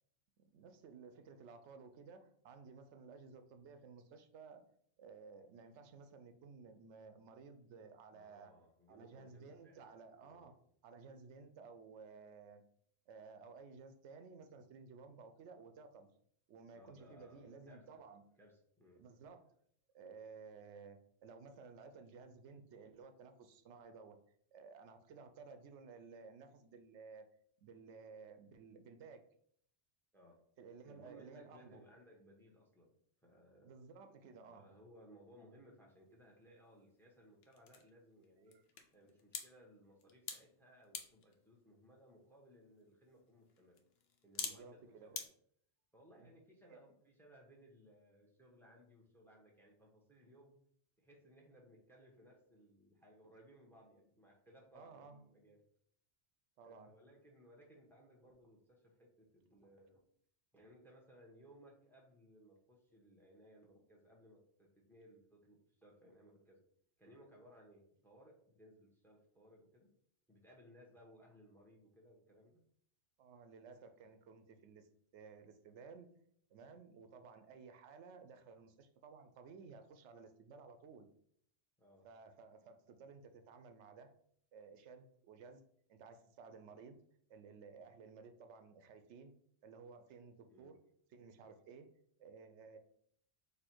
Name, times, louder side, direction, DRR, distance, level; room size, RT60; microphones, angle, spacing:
voice 1, 0.4-4.6 5.0-8.5 8.9-10.6 10.8-12.6 13.1-16.1 16.5-18.2 19.0-19.5 19.9-24.2 24.5-27.3 27.6-29.2 30.6-31.8 33.6-34.7 44.4-45.2 46.2-46.3 46.7-46.8 54.7-55.3 56.6-56.9 73.2-74.9 75.1-76.1 76.5-81.1 82.0-84.1 84.5-85.6 85.9-87.0 87.3-90.8 91.1-92.8, right 5 dB, 80° right, 8 dB, 0.9 m, -56 dB
voice 2, 8.1-9.9 10.2-10.5 16.7-18.0 18.4-19.0 30.1-30.4 30.8-32.9 33.2-33.7 34.5-38.6 38.9-43.8 44.2-45.3 45.9-50.6 51.0-55.6 56.6-60.0 60.5-66.6 67.0-69.9 70.3-72.6 81.8-82.1 90.5-90.9, equal, ahead, -1 dB, 0.8 m, -63 dB
sound 1, 35.9-45.3, left 6 dB, 65° left, 0.8 m, -51 dB
4.3 x 2.8 x 4.4 m, 0.65 s
omnidirectional pair, 1.2 m